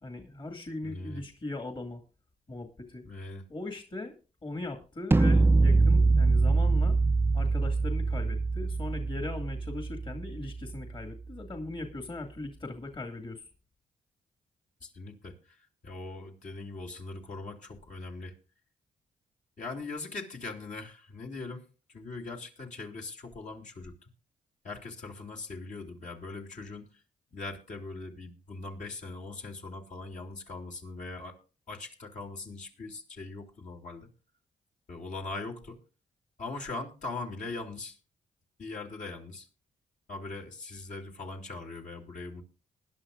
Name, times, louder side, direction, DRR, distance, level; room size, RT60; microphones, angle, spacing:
voice 1, 0.0-2.0 2.5-3.0 3.5-4.2 4.4-7.0 7.3-13.4, left 2 dB, 35° left, 5 dB, 2.2 m, -39 dB
voice 2, 0.8-1.2 3.0-3.5 14.8-15.4 15.8-18.3 19.6-23.9 24.6-26.9 27.3-31.4 31.7-34.1 34.9-35.8 36.4-38.0 38.6-39.5 40.1-42.4, left 3 dB, 60° left, 0 dB, 2.8 m, -40 dB
sound 1, 5.1-11.1, right 3 dB, 15° right, 0.5 m, -24 dB
20.0 x 11.0 x 2.5 m, 0.34 s
cardioid pair, 70°, 15 cm